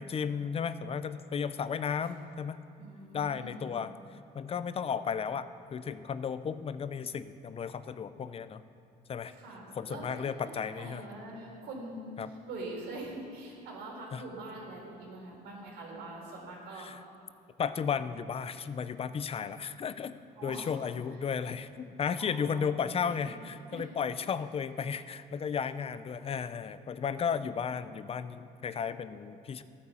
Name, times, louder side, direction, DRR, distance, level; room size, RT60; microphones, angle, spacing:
voice 1, 0.0-2.6 3.1-3.9 4.3-8.6 9.1-9.3 9.8-11.0 12.2-12.3 14.1-14.2 16.7-17.0 17.6-29.6, left 6 dB, 35° left, 13 dB, 0.6 m, -34 dB
voice 2, 2.8-3.8 9.4-12.1 12.5-16.9 20.4-20.8 22.2-23.3 23.7-23.8, right 2 dB, 85° right, -1 dB, 3.9 m, -44 dB
14.5 x 9.6 x 7.1 m, 2.7 s
cardioid pair, 110°, 17 cm